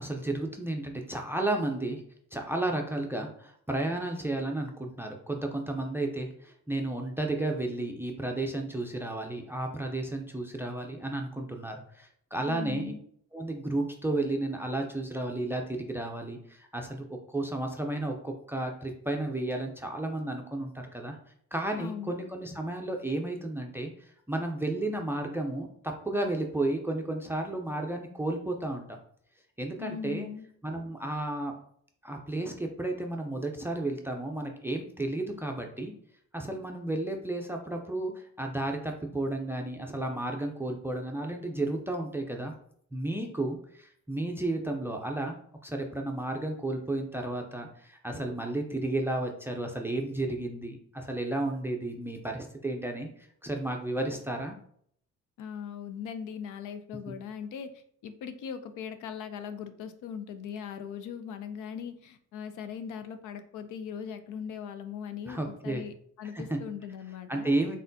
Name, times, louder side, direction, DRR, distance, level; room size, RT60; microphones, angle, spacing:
voice 1, 0.0-2.0 2.3-12.9 13.3-21.2 21.5-23.9 24.3-29.0 29.6-30.3 30.6-31.5 32.0-35.9 36.3-42.5 42.9-45.3 45.6-53.1 53.4-54.5 57.1-57.2 65.3-65.8 66.3-66.6 67.3-67.8, right 2 dB, 10° right, 3 dB, 0.5 m, -32 dB
voice 2, 12.5-13.0 21.8-22.1 29.8-30.5 55.4-57.7 58.0-67.6, left 7 dB, 85° left, 10 dB, 0.5 m, -39 dB
4.0 x 3.7 x 2.7 m, 0.65 s
cardioid pair, 90°, 30 cm